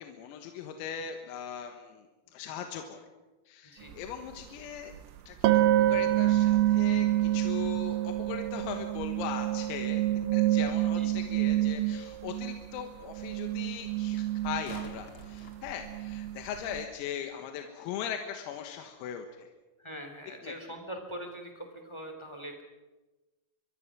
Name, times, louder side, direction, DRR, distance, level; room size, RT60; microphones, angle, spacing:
voice 1, 0.0-2.1 2.3-3.0 3.5-4.9 5.3-5.5 5.9-10.0 10.3-19.5 20.4-20.5, left 8 dB, 85° left, 5 dB, 4.1 m, -39 dB
voice 2, 3.7-4.1 10.9-11.2 19.8-22.6, right 1 dB, 15° left, 4 dB, 0.8 m, -42 dB
sound 1, 3.9-4.0 5.4-12.9 13.1-16.9, right 14 dB, 75° right, 3.3 m, -27 dB
sound 2, 14.3-16.4 19.3-19.4, left 4 dB, 65° left, 1.3 m, -49 dB
26.0 x 22.5 x 6.2 m, 1.1 s
omnidirectional pair, 6.0 m